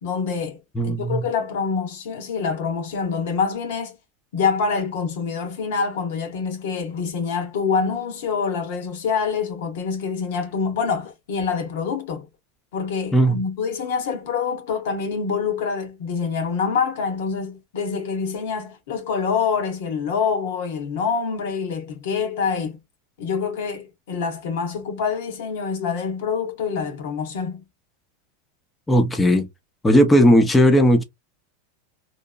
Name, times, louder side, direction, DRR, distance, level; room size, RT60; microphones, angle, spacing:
voice 1, 0.0-0.6 0.8-4.0 4.3-12.3 12.7-22.8 23.2-27.6, left 5 dB, 75° left, 1.1 m, -26 dB
voice 2, 0.8-1.2 13.1-13.4 28.9-29.5 29.8-31.0, equal, 10° left, 0.5 m, -16 dB
2.9 x 2.0 x 2.3 m
hypercardioid pair, 115°, 0 cm